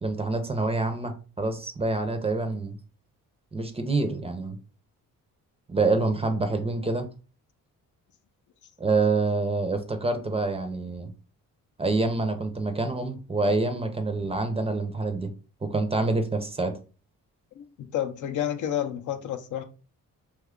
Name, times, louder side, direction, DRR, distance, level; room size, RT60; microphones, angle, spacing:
voice 1, 0.0-2.8 3.5-4.6 5.7-7.1 8.8-11.1 11.8-15.3 15.6-16.8, right 3 dB, 20° right, 0.5 m, -26 dB
voice 2, 17.6-19.6, left 10 dB, 65° left, 0.5 m, -30 dB
2.9 x 2.3 x 3.5 m
cardioid pair, 95°, 34 cm